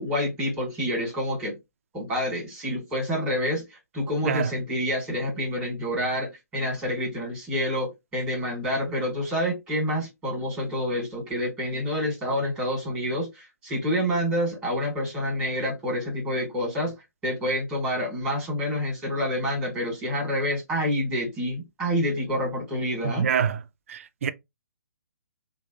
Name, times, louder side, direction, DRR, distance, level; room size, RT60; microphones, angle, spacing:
voice 1, 0.0-1.6 1.9-6.3 6.5-16.9 17.2-23.3, equal, 5° right, 1.5 m, -28 dB
voice 2, 23.0-23.6 23.9-24.3, right 7 dB, 55° right, 0.4 m, -25 dB
3.2 x 2.0 x 2.7 m
hypercardioid pair, 145°, 9 cm